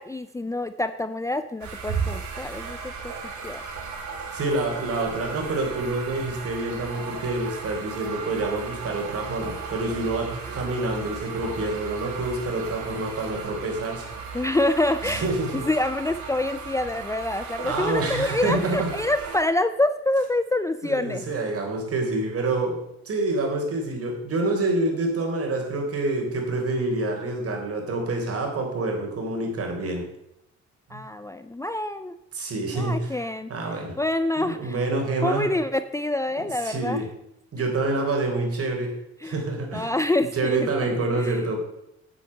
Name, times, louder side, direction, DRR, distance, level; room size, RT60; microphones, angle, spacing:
voice 1, 0.0-2.8 3.0-3.1 3.4-3.6 14.3-21.2 30.9-32.1 32.8-33.5 34.0-34.7 35.2-37.0 37.6-37.7 39.2-39.4 39.7-41.4, left 2 dB, 10° left, 11 dB, 0.5 m, -26 dB
sound 1, 1.6-19.4, right 5 dB, 80° right, 3.0 m, -36 dB
voice 2, 4.3-14.1 15.0-15.6 17.6-18.9 20.8-22.8 23.1-30.0 30.9-31.0 32.3-33.2 33.5-33.9 34.4-35.5 36.6-37.1 37.5-38.9 39.2-39.9 40.3-41.6, right 2 dB, 55° right, 1 dB, 3.8 m, -27 dB
9.2 x 7.9 x 6.5 m, 0.82 s
cardioid pair, 95°, 29 cm